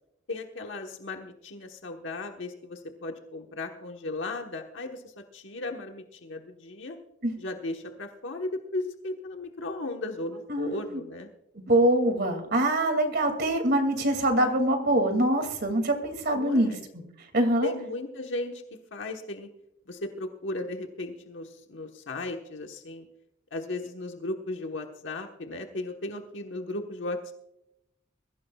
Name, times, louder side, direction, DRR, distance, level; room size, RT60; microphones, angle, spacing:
voice 1, 0.3-7.0 7.4-11.3 16.3-16.8 17.6-18.6 18.9-19.5 19.9-23.0 23.5-27.3, left 2 dB, 75° left, 3 dB, 1.3 m, -36 dB
voice 2, 10.5-11.0 11.5-16.7 17.3-17.7, right 1 dB, 55° right, 6 dB, 2.4 m, -24 dB
22.5 x 15.0 x 2.4 m, 0.84 s
head